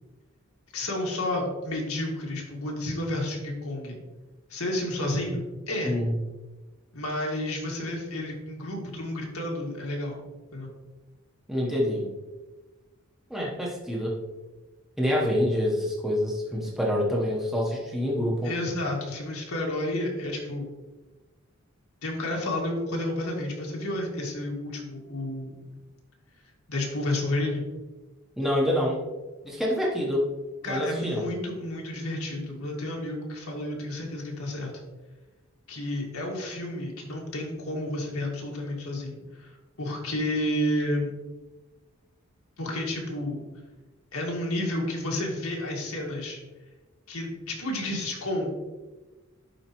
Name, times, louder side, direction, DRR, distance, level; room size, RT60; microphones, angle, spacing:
voice 1, 0.7-4.0 4.5-5.9 6.9-10.2 10.5-10.7 18.4-20.7 22.0-25.8 26.7-27.6 30.6-34.7 35.7-39.5 39.8-41.1 42.6-43.4 44.1-46.4 47.1-48.5, left 1 dB, 80° left, -1 dB, 1.9 m, -31 dB
voice 2, 5.8-6.2 11.5-12.1 13.3-14.2 15.0-18.5 28.4-29.0 29.4-30.3 30.7-31.3, left 1 dB, ahead, -3 dB, 1.0 m, -26 dB
11.0 x 4.6 x 3.0 m, 1.2 s
head